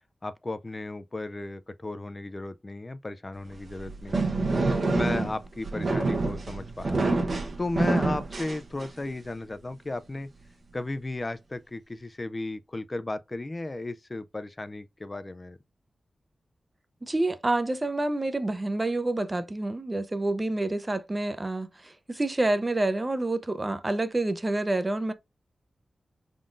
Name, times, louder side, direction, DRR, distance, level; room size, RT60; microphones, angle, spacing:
voice 1, 0.2-4.3 4.8-7.1 7.6-10.3 10.7-15.6, left 2 dB, 30° left, 0.3 m, -35 dB
sound 1, 3.5-9.2, right 3 dB, 65° right, 0.9 m, -27 dB
voice 2, 17.0-25.1, right 2 dB, 25° right, 0.6 m, -28 dB
3.7 x 3.6 x 2.5 m
cardioid pair, 65°, 0 cm